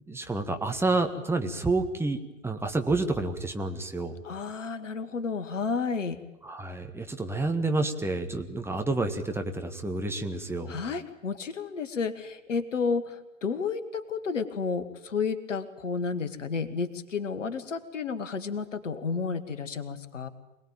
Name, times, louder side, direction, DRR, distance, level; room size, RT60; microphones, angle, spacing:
voice 1, 0.1-4.2 6.4-10.8, right 2 dB, 5° right, 5 dB, 1.8 m, -29 dB
voice 2, 4.2-6.2 10.7-20.3, left 5 dB, 70° left, 11 dB, 2.1 m, -31 dB
26.0 x 19.5 x 9.1 m, 0.93 s
figure-of-eight pair, 95°, 39 cm